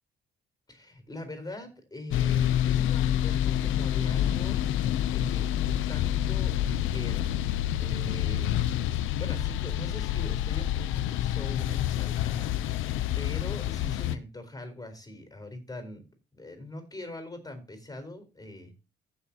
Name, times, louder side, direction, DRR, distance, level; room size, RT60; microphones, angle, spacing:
voice 1, 0.7-4.6 5.1-7.3 7.8-8.6 9.2-12.5 13.2-16.0 16.3-18.7, left 1 dB, 20° left, 7 dB, 4.2 m, -42 dB
sound 1, 2.1-14.2, left 11 dB, 85° left, 0.6 m, -28 dB
15.5 x 6.5 x 2.9 m, 0.30 s
cardioid pair, 90°, 20 cm